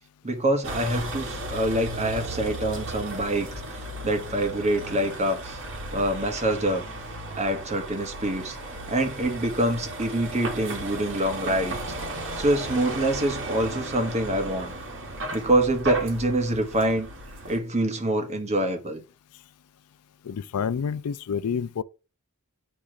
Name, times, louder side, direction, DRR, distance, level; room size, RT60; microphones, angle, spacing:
voice 1, 0.2-3.5 4.0-5.6 5.9-6.8 7.4-8.6 8.9-11.8 12.4-14.7 15.3-17.1 17.5-19.0, right 1 dB, 30° right, 1.2 m, -25 dB
Vehicle, 0.6-17.6, right 1 dB, 60° right, 2.0 m, -35 dB
voice 2, 20.2-21.8, left 6 dB, 80° left, 0.4 m, -28 dB
8.3 x 3.0 x 4.9 m
head